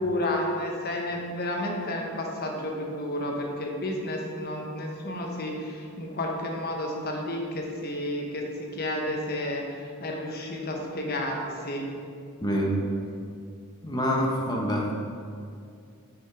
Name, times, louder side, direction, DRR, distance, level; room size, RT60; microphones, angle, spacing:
voice 1, 0.0-11.9 13.1-13.2, left 1 dB, 45° left, 1 dB, 1.0 m, -31 dB
voice 2, 12.4-12.8 13.8-14.9, equal, 20° left, -2 dB, 0.8 m, -26 dB
6.7 x 5.1 x 5.0 m, 2.3 s
head